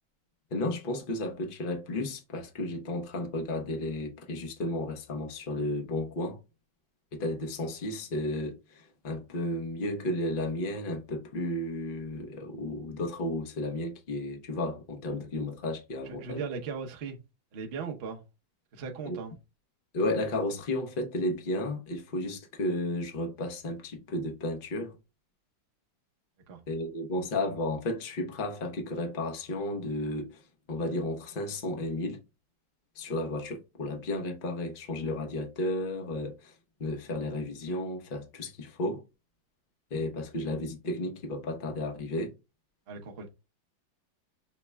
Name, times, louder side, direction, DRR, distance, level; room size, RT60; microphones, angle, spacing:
voice 1, 0.5-6.4 7.1-16.4 19.1-19.2 19.9-24.9 26.7-30.4 30.7-32.2 33.0-36.5 36.8-39.0 39.9-42.3, left 1 dB, 90° left, 0.4 m, -33 dB
voice 2, 16.0-17.2 17.5-18.2 18.7-19.3 26.5-26.6 42.9-43.3, right 5 dB, 60° right, 0.6 m, -38 dB
5.7 x 2.1 x 3.4 m
omnidirectional pair, 2.2 m